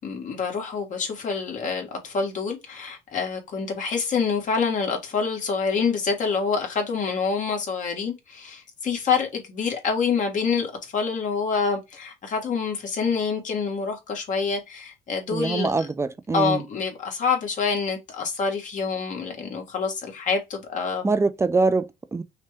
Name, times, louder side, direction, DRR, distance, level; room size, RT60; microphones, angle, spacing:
voice 1, 0.0-15.9 16.3-21.1, left 5 dB, 50° left, 1.5 m, -27 dB
voice 2, 15.3-16.6 21.0-22.2, right 3 dB, 15° right, 0.3 m, -23 dB
5.6 x 2.2 x 3.3 m
cardioid pair, 110°, 17 cm